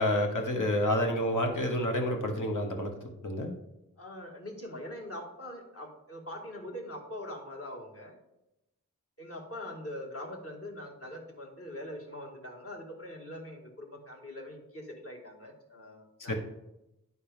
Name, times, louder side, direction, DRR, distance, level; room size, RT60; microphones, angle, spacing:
voice 1, 0.0-2.9 3.2-3.5 16.3-16.4, left 1 dB, 65° left, 3 dB, 1.3 m, -28 dB
voice 2, 4.0-8.1 9.2-16.4, left 1 dB, 45° left, -1 dB, 2.0 m, -43 dB
10.5 x 4.3 x 3.5 m, 0.91 s
cardioid pair, 45°, 34 cm